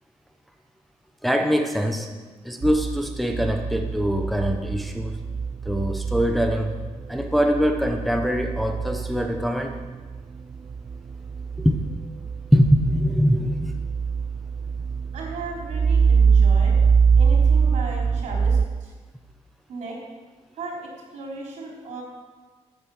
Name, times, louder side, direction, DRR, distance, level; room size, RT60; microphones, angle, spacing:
voice 1, 1.2-2.1 2.4-5.2 5.6-6.7 7.1-9.8 11.6-11.8 12.5-13.7, equal, ahead, 3 dB, 0.9 m, -23 dB
sound 1, 2.6-18.7, right 6 dB, 35° right, 0.6 m, -23 dB
voice 2, 15.1-16.8 17.1-18.9 19.7-20.0 20.5-22.0, right 3 dB, 75° right, -2 dB, 4.3 m, -36 dB
13.5 x 9.1 x 6.5 m, 1.4 s
wide cardioid pair, 160°, 12 cm